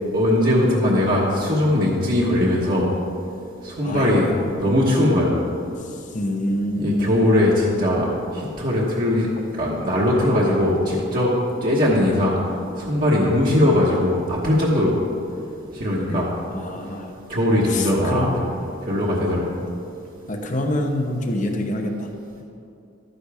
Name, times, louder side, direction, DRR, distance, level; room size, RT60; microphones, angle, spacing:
voice 1, 0.1-2.9 3.6-4.3 4.6-5.3 6.7-8.1 8.3-9.3 9.6-11.3 11.6-12.4 12.7-14.9 15.7-16.3 17.3-18.4 18.8-19.6, left 1 dB, 45° right, -6 dB, 1.2 m, -20 dB
voice 2, 3.8-4.5 5.9-7.2 16.1-16.2 16.5-17.1 17.7-18.4 20.3-22.1, left 1 dB, 40° left, 4 dB, 0.9 m, -26 dB
12.5 x 9.8 x 3.5 m, 2.6 s
head